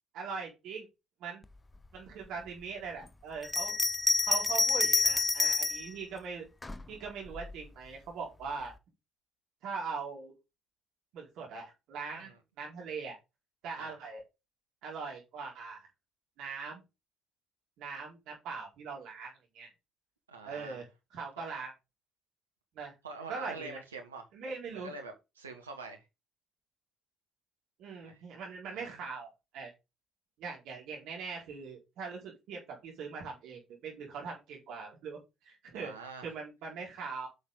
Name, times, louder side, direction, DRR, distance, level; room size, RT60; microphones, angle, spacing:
voice 1, 0.1-0.9 1.2-1.4 1.9-3.7 4.2-6.5 6.9-8.7 9.6-10.3 11.1-12.3 12.6-13.2 13.6-14.2 14.8-15.9 16.4-16.8 17.8-19.7 20.4-21.7 22.7-22.9 23.3-23.8 24.3-24.9 27.8-29.3 29.5-29.7 30.4-35.9 36.2-37.3, right 5 dB, 65° right, 4.7 m, -41 dB
Bell, 3.4-5.9 6.6-7.5, left 3 dB, 20° left, 0.9 m, -28 dB
voice 2, 20.3-20.8 23.0-24.2 24.7-26.0 28.0-28.2 28.7-29.0 35.7-36.3, right 3 dB, 90° right, 1.5 m, -45 dB
8.5 x 6.5 x 4.0 m
hypercardioid pair, 50°, 0 cm